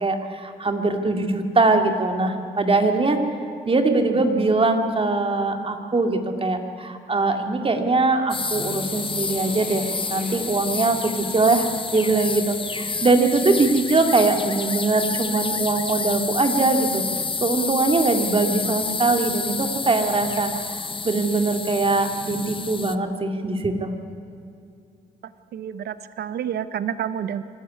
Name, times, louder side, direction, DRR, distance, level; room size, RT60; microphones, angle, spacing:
voice 1, 0.0-3.2 3.6-23.9, right 3 dB, 30° right, 5 dB, 2.5 m, -22 dB
sound 1, 8.3-22.9, left 4 dB, 30° left, 1.0 m, -29 dB
sound 2, 8.5-12.6, left 3 dB, 50° left, 5.6 m, -41 dB
voice 2, 25.5-27.4, right 9 dB, 65° right, 14 dB, 0.8 m, -29 dB
25.5 x 12.0 x 9.7 m, 2.5 s
supercardioid pair, 60°, 18 cm